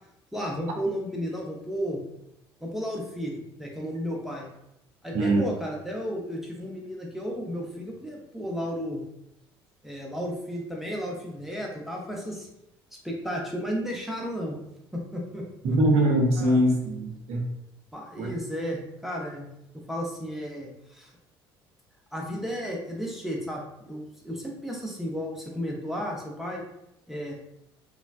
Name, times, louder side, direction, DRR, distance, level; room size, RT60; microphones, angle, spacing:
voice 1, 0.3-2.0 2.6-3.3 3.6-4.5 5.0-9.0 9.8-12.5 13.0-14.6 14.9-15.4 16.4-16.6 17.9-19.5 19.7-21.1 22.1-26.6 27.1-27.3, equal, ahead, -2 dB, 0.7 m, -33 dB
voice 2, 15.6-17.5 18.2-18.3, right 1 dB, 55° right, 0 dB, 0.7 m, -22 dB
3.1 x 2.1 x 2.4 m, 0.81 s
figure-of-eight pair, 55°, 13 cm